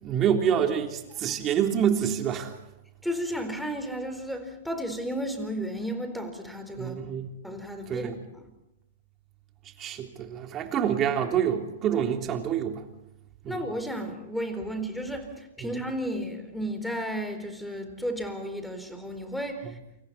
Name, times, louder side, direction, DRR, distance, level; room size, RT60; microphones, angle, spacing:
voice 1, 0.0-2.5 6.8-7.3 7.9-8.1 9.8-12.8 13.4-13.6 15.6-15.7 19.6-19.7, right 8 dB, 30° right, 4 dB, 3.4 m, -27 dB
voice 2, 3.0-7.0 7.4-8.4 13.5-19.8, equal, ahead, 7 dB, 4.2 m, -33 dB
28.5 x 26.5 x 4.3 m, 0.89 s
hypercardioid pair, 110°, 0 cm